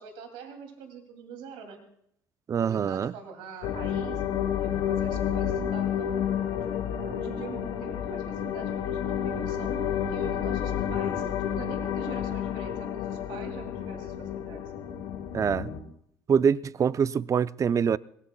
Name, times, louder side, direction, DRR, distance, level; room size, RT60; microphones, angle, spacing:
voice 1, 0.0-1.8 2.6-6.3 6.6-6.7 6.9-14.6, right 5 dB, 75° right, 2.6 m, -44 dB
voice 2, 2.5-3.1 15.3-15.7 16.3-18.0, right 7 dB, 40° right, 0.5 m, -24 dB
sound 1, 3.6-15.8, left 9 dB, 75° left, 1.9 m, -30 dB
22.5 x 18.5 x 2.3 m
hypercardioid pair, 65°, 8 cm